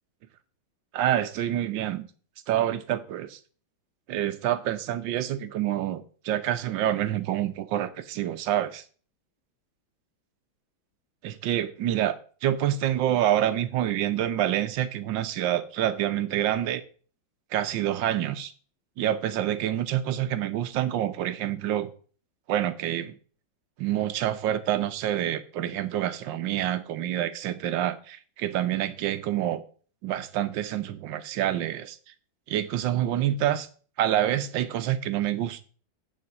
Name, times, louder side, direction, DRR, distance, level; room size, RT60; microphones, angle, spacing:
voice 1, 0.9-2.1 2.5-3.4 4.1-8.8 11.2-12.1 12.4-16.8 17.5-18.5 19.0-21.9 22.5-23.2 23.8-29.6 30.0-32.0 32.5-33.7 34.0-35.6, right 11 dB, 70° right, 12 dB, 1.4 m, -27 dB
9.4 x 4.4 x 7.1 m, 0.42 s
omnidirectional pair, 2.2 m